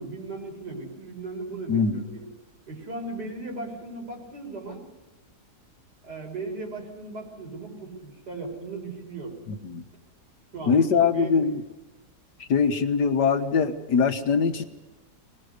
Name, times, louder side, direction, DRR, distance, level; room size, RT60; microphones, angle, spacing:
voice 1, 0.0-2.3 2.7-4.8 6.0-9.4 10.5-11.4, right 2 dB, 85° right, 1 dB, 6.1 m, -37 dB
voice 2, 1.7-2.0 9.5-9.8 10.7-11.6 12.5-14.6, left 5 dB, 85° left, 8 dB, 2.0 m, -22 dB
24.5 x 20.0 x 6.6 m, 1.1 s
omnidirectional pair, 1.8 m